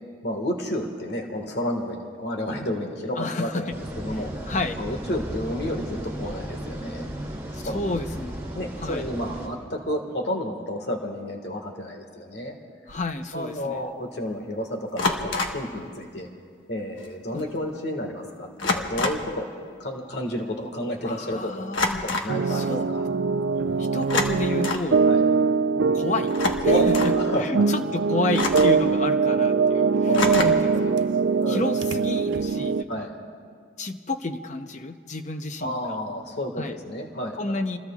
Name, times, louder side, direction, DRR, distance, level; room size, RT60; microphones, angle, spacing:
voice 1, 0.2-4.5 4.8-7.1 7.6-7.8 8.5-12.6 13.3-16.3 16.7-19.5 19.8-21.7 22.0-23.0 25.1-25.3 26.6-27.6 30.1-30.8 31.4-31.6 32.9-33.1 35.6-37.4, equal, 60° left, 3 dB, 1.6 m, -31 dB
voice 2, 3.2-3.8 4.1-4.2 4.5-4.7 7.5-8.4 8.8-9.0 12.9-13.8 17.3-17.4 21.0-22.0 22.5-22.9 23.8-25.0 25.8-26.3 26.6-31.1 31.5-33.1 33.8-35.7 36.6-36.7 37.4-37.8, left 2 dB, 40° left, 7 dB, 0.7 m, -31 dB
sound 1, 3.7-9.5, right 1 dB, 15° right, 2.8 m, -35 dB
sound 2, 12.9-13.1 15.0-15.7 17.0-17.1 17.4-17.6 18.6-19.3 21.7-22.4 24.0-24.9 26.3-27.2 28.3-28.9 30.1-30.7, left 3 dB, 85° left, 1.3 m, -27 dB
sound 3, 22.3-32.8, right 5 dB, 70° right, 0.4 m, -22 dB
28.5 x 21.0 x 2.4 m, 2.1 s
head